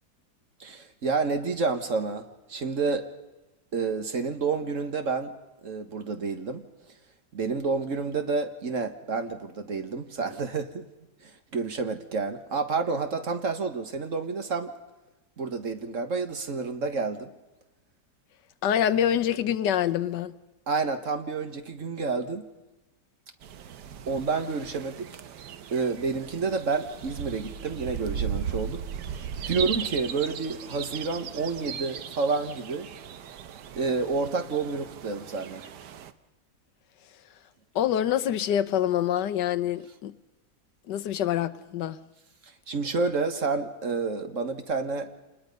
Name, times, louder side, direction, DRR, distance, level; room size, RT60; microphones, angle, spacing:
voice 1, 0.6-3.1 3.7-5.3 5.6-6.6 7.3-10.9 11.2-14.7 15.4-17.3 20.7-22.5 24.1-25.1 25.7-32.9 33.7-35.6 42.7-45.1, right 4 dB, 50° right, 1.7 m, -29 dB
voice 2, 18.6-20.3 37.7-40.1 40.9-42.0, left 10 dB, 90° left, 1.5 m, -26 dB
sound 1, 23.4-36.1, right 8 dB, 80° right, 1.5 m, -37 dB
28.0 x 20.5 x 5.4 m
omnidirectional pair, 1.8 m